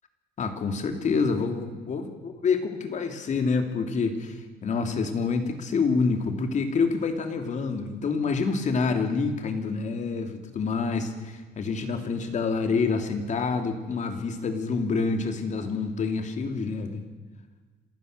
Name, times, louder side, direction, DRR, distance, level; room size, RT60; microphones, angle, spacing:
voice 1, 0.4-17.0, left 4 dB, 45° left, 6 dB, 3.0 m, -27 dB
27.0 x 15.5 x 6.8 m, 1.3 s
cardioid pair, 110°, 17 cm